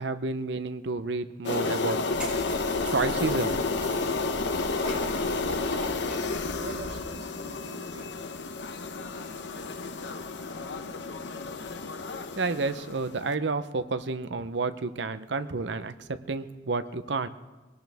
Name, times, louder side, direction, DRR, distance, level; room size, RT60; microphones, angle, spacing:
voice 1, 0.0-2.0 2.9-3.6 12.4-17.3, right 3 dB, 70° right, 10 dB, 0.7 m, -30 dB
sound 1, 1.4-13.2, left 3 dB, 70° left, 0.8 m, -31 dB
sound 2, 2.1-7.0, right 1 dB, 5° right, 7.4 m, -42 dB
voice 2, 4.6-8.2 11.5-12.4, right 2 dB, 90° right, 0 dB, 2.3 m, -45 dB
22.5 x 18.5 x 3.5 m, 1.2 s
head